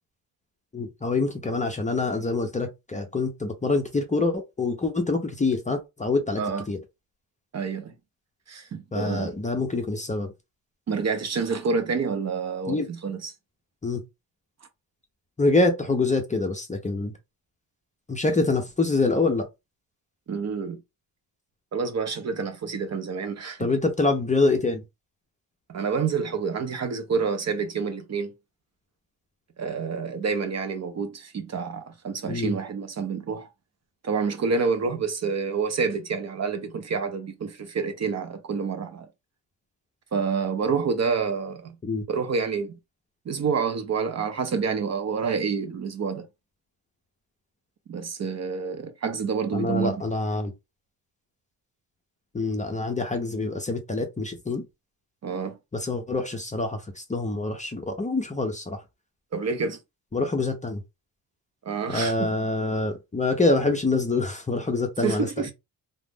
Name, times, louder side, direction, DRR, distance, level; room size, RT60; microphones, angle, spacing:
voice 1, 0.7-6.4 6.7-6.8 8.9-10.3 12.7-12.9 13.8-14.0 15.4-17.1 18.1-19.5 23.6-24.8 32.3-32.6 41.8-42.0 49.5-50.5 52.3-54.6 55.7-58.8 60.1-60.8 61.9-65.5, left 3 dB, 20° left, 0.5 m, -25 dB
voice 2, 7.5-7.9 8.5-9.3 10.9-13.3 20.3-20.8 21.7-23.7 25.7-28.3 29.6-33.5 34.0-39.1 40.1-41.8 42.1-42.8 43.3-46.3 47.9-50.0 55.2-55.6 59.3-59.8 61.6-62.3 65.0-65.5, right 5 dB, 40° right, 0.5 m, -28 dB
2.4 x 2.0 x 3.4 m
cardioid pair, 110°, 41 cm